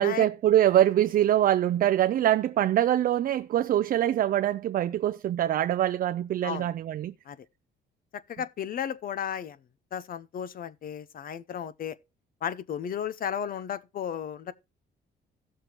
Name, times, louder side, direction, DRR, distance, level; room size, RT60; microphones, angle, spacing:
voice 1, 0.0-7.1, right 12 dB, 50° right, 0.4 m, -24 dB
voice 2, 8.3-9.6 9.9-12.0 12.4-14.5, left 8 dB, 50° left, 0.6 m, -34 dB
16.5 x 6.6 x 2.9 m
cardioid pair, 125°, 19 cm